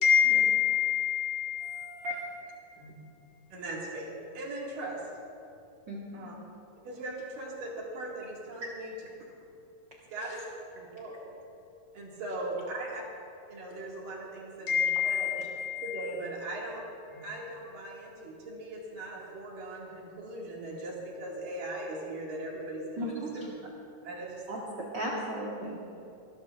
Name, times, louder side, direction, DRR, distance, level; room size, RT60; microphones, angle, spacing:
voice 1, 0.0-1.9 2.8-2.9 14.7-16.0, left 8 dB, 65° left, -1 dB, 3.6 m, -26 dB
voice 2, 1.6-2.1 3.5-5.0 6.1-6.3 6.9-8.9 10.1-10.4 10.9-11.3 11.9-13.0 13.5-15.4 15.8-16.9 17.2-23.3 24.0-24.4, right 1 dB, 70° right, -3 dB, 3.7 m, -39 dB
voice 3, 5.9-6.3 10.2-10.4 23.0-23.5 24.5-25.8, equal, 55° right, -4 dB, 1.2 m, -36 dB
24.5 x 12.5 x 2.5 m, 2.7 s
omnidirectional pair, 4.0 m